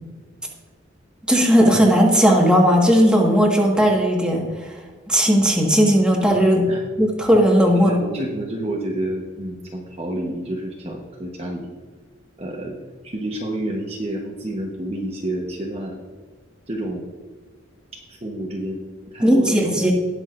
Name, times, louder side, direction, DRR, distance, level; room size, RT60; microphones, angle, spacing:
voice 1, 1.3-4.7 5.1-6.7 7.0-8.0 19.2-19.9, equal, 5° right, -2 dB, 1.6 m, -16 dB
voice 2, 7.7-11.7 12.4-12.8 13.0-16.0 16.7-17.1 17.9-19.9, right 1 dB, 30° right, -1 dB, 1.1 m, -29 dB
19.0 x 6.4 x 2.5 m, 1.5 s
head